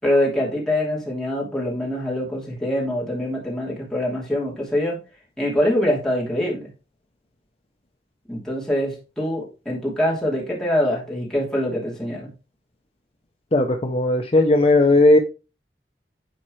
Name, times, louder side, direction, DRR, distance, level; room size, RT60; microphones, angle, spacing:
voice 1, 0.0-5.0 5.4-6.7 8.3-12.3, left 1 dB, 5° left, 2.9 m, -24 dB
voice 2, 13.5-15.2, left 2 dB, 35° left, 0.6 m, -16 dB
10.0 x 4.4 x 3.1 m
head